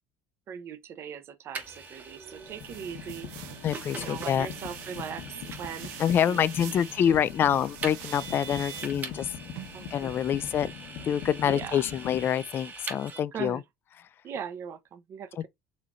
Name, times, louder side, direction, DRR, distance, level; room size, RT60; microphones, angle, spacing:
voice 1, 0.5-3.3 4.0-5.9 6.2-6.4 6.7-6.8 7.1-7.3 9.7-10.1 11.5-11.8 13.3-13.6 14.2-15.3, right 8 dB, 45° right, 0.6 m, -39 dB
Vehicle, 1.6-13.2, right 4 dB, 30° right, 1.0 m, -43 dB
sound 1, 1.7-1.8 2.3-12.3, left 8 dB, 75° left, 1.1 m, -43 dB
sound 2, 2.5-10.7, right 12 dB, 90° right, 0.6 m, -46 dB
voice 2, 3.6-4.5 6.0-9.3 9.9-10.7 11.1-13.6 15.4-15.5, left 9 dB, 40° left, 0.3 m, -26 dB
4.2 x 3.0 x 2.5 m
cardioid pair, 115°, 6 cm